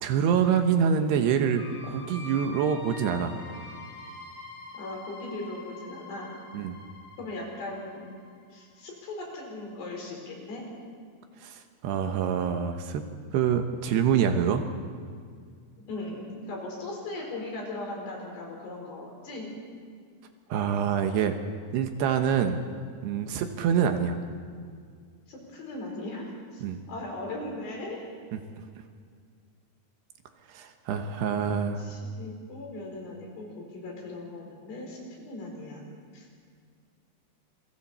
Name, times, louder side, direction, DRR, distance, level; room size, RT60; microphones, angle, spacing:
voice 1, 0.0-3.3 6.5-6.8 11.4-13.0 13.3-14.6 20.5-21.4 21.7-22.6 23.0-24.2 26.6-26.8 28.3-28.4 30.5-31.9, right 7 dB, 75° right, 6 dB, 2.9 m, -26 dB
sound 1, 1.6-9.2, left 2 dB, 40° left, 2.8 m, -45 dB
voice 2, 4.7-6.3 7.2-8.1 8.5-10.7 15.8-19.6 25.3-28.1 31.3-35.8 36.1-36.3, left 2 dB, 65° left, -1 dB, 6.4 m, -38 dB
28.5 x 22.5 x 4.3 m, 2.1 s
omnidirectional pair, 5.2 m